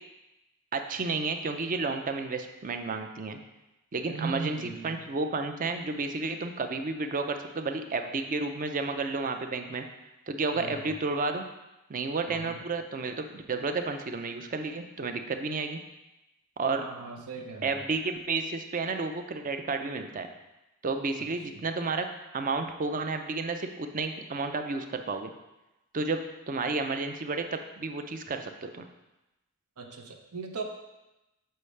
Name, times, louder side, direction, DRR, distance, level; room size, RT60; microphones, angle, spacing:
voice 1, 0.7-3.4 3.9-9.8 10.3-11.5 11.9-15.8 16.6-16.8 17.6-20.3 20.8-22.1 22.3-25.3 25.9-28.8, right 3 dB, 35° right, 6 dB, 0.5 m, -31 dB
voice 2, 4.1-5.0 10.5-10.9 12.3-12.6 16.7-17.7 29.8-30.6, right 4 dB, 85° right, 3 dB, 0.7 m, -38 dB
6.5 x 5.5 x 3.2 m, 0.99 s
head